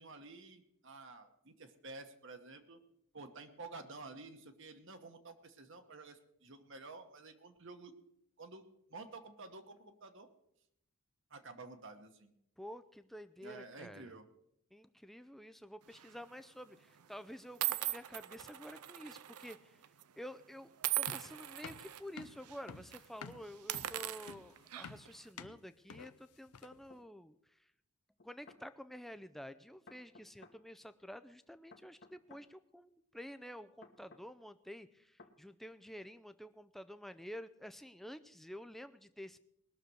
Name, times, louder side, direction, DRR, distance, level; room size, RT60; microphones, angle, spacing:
voice 1, 0.0-2.8 3.1-7.9 8.4-8.6 8.9-10.3 11.3-12.3 13.4-14.2, right 3 dB, 55° right, 7 dB, 1.2 m, -51 dB
voice 2, 12.6-14.1 14.7-19.8 20.1-20.7 21.0-27.7 28.2-39.4, equal, ahead, 11 dB, 0.4 m, -50 dB
sound 1, 15.9-16.2 17.0-17.1 17.6-19.6 19.8-20.0 20.8-22.0 22.4-22.6 22.9-23.0 23.5-25.1, right 15 dB, 90° right, 0.6 m, -39 dB
sound 2, 21.1-26.9, left 5 dB, 85° left, 0.6 m, -51 dB
sound 3, 26.9-27.0 28.2-28.6 29.9-30.6 31.7-32.5 33.8-34.3 35.2-35.4, left 3 dB, 50° left, 1.3 m, -58 dB
20.0 x 6.7 x 6.2 m, 0.76 s
head